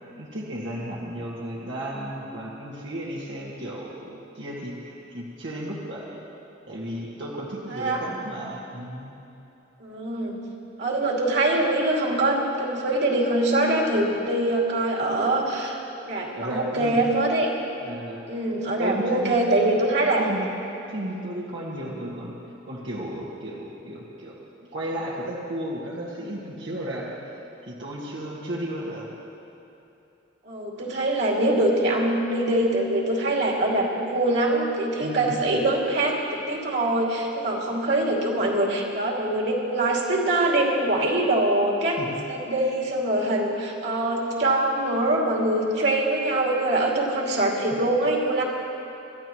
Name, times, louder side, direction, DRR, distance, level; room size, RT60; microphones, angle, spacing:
voice 1, 0.2-6.3 6.7-9.1 16.4-17.1 17.8-18.2 18.8-20.5 20.9-22.4 22.6-24.4 24.7-27.2 27.7-29.1 35.0-35.4 41.9-42.2, right 1 dB, 90° right, -6 dB, 1.9 m, -34 dB
voice 2, 7.7-8.1 9.8-10.4 10.8-15.8 16.1-17.5 18.3-20.2 30.4-42.0 42.3-48.4, right 1 dB, 65° right, -3 dB, 2.6 m, -23 dB
27.5 x 13.5 x 3.1 m, 2.9 s
head